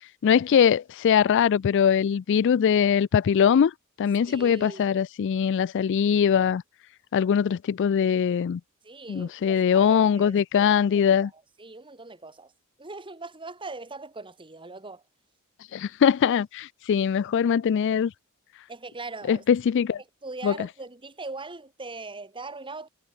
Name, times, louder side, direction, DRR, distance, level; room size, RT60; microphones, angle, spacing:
voice 1, 0.2-3.7 4.0-6.6 7.1-8.6 9.1-11.3 15.7-18.1 19.3-20.0 20.4-20.5, left 7 dB, 55° left, 0.3 m, -22 dB
voice 2, 4.2-5.0 8.8-11.3 11.6-12.5 12.8-15.0 18.7-19.4 20.0-22.9, right 3 dB, 25° right, 2.4 m, -40 dB
head